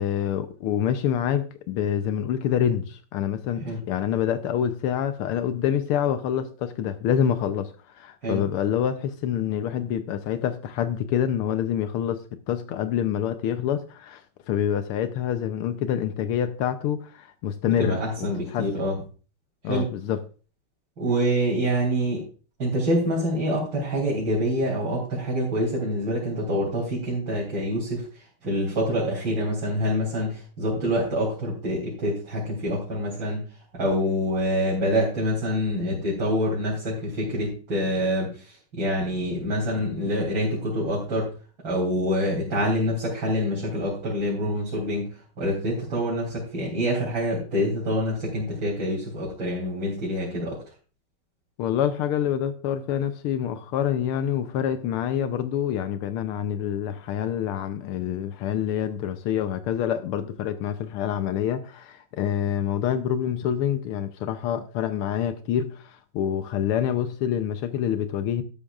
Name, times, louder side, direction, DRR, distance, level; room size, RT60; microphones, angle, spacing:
voice 1, 0.0-18.9 19.6-20.2 51.6-68.4, left 9 dB, 85° left, 1.7 m, -27 dB
voice 2, 17.8-18.9 19.7-19.9 21.0-22.2 22.6-28.0 28.4-33.4 33.8-38.3 38.7-41.3 41.6-45.1 45.4-50.6, equal, 60° right, 4.1 m, -26 dB
12.5 x 11.5 x 2.5 m
omnidirectional pair, 2.4 m